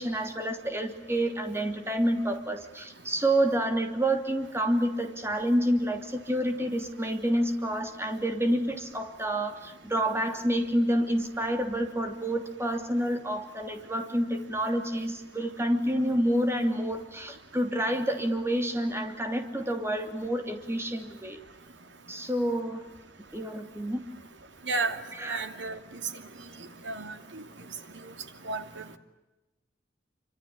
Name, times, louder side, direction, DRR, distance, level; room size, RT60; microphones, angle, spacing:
voice 1, 0.0-21.4 22.1-22.8 23.3-24.0 25.2-25.4, right 1 dB, 15° right, 5 dB, 3.0 m, -28 dB
voice 2, 24.7-25.0 25.3-25.8 26.8-27.4 28.4-29.0, right 3 dB, 80° right, 7 dB, 2.6 m, -32 dB
27.0 x 25.5 x 8.6 m, 1.0 s
head